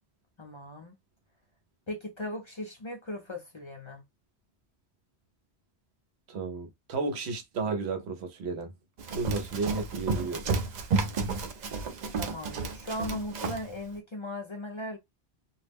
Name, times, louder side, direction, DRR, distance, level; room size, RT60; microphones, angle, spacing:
voice 1, 0.4-1.0 1.9-4.0 12.1-15.0, left 1 dB, 40° left, 0.5 m, -38 dB
voice 2, 6.3-8.7 9.1-10.5, right 4 dB, 90° right, 0.9 m, -33 dB
Run, 9.0-13.7, right 4 dB, 55° right, 0.5 m, -31 dB
2.3 x 2.0 x 3.4 m
omnidirectional pair, 1.1 m